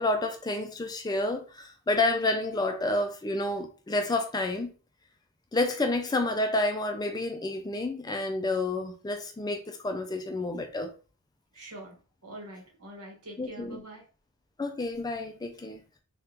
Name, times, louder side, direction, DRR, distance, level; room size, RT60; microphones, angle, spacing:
voice 1, 0.0-4.7 5.5-10.9 13.4-13.8 14.6-15.8, left 2 dB, 20° left, 0.3 m, -29 dB
voice 2, 11.5-14.1, right 1 dB, 80° right, 1.3 m, -45 dB
3.4 x 2.3 x 2.9 m
head